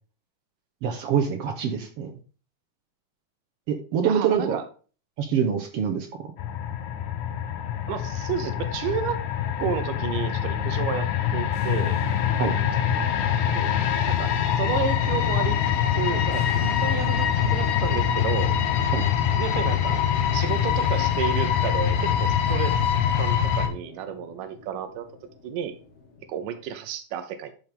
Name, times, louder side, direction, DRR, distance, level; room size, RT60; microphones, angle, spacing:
voice 1, 0.8-2.1 3.7-4.6 5.2-6.1 12.4-12.5 18.9-19.0, right 7 dB, 70° right, 5 dB, 1.5 m, -25 dB
voice 2, 4.0-4.6 7.9-9.2 9.6-12.0 13.5-15.6 15.9-16.5 16.8-18.5 19.4-20.0 20.3-25.1 25.4-25.7 26.3-27.5, right 8 dB, 85° right, 10 dB, 2.4 m, -31 dB
sound 1, 6.4-23.7, left 9 dB, 70° left, 2.1 m, -24 dB
sound 2, 11.4-26.7, left 4 dB, 55° left, 2.4 m, -37 dB
11.5 x 5.4 x 3.5 m, 0.38 s
omnidirectional pair, 3.7 m